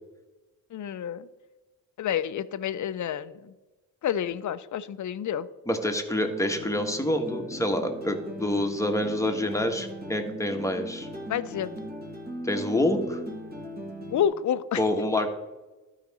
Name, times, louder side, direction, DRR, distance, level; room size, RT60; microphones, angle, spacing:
voice 1, 0.7-1.3 2.0-3.5 4.0-5.5 11.3-11.8 14.1-14.8, left 9 dB, 50° left, 15 dB, 0.6 m, -29 dB
voice 2, 5.7-11.1 12.4-13.2 14.8-15.3, left 1 dB, 10° left, 4 dB, 1.4 m, -27 dB
sound 1, 6.3-14.3, equal, 25° right, 2.0 m, -39 dB
12.5 x 5.0 x 4.2 m, 1.1 s
supercardioid pair, 65°, 37 cm